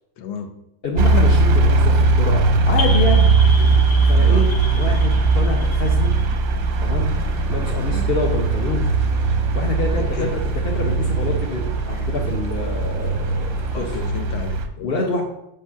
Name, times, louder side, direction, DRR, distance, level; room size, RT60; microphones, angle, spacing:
voice 1, 0.2-0.5 4.1-4.5 7.8-8.1 9.9-10.4 13.7-14.9, left 6 dB, 75° left, 7 dB, 1.5 m, -33 dB
voice 2, 0.8-3.3 4.1-4.5 4.7-6.1 6.8-7.1 7.5-8.9 9.5-13.9 14.8-15.2, left 2 dB, 50° left, -1 dB, 0.7 m, -26 dB
sound 1, 1.0-14.7, right 3 dB, 60° right, 0.9 m, -19 dB
sound 2, 2.8-7.2, left 3 dB, 25° left, 0.9 m, -33 dB
sound 3, 7.0-14.0, equal, ahead, 0.9 m, -41 dB
6.3 x 5.5 x 5.7 m, 0.83 s
omnidirectional pair, 2.2 m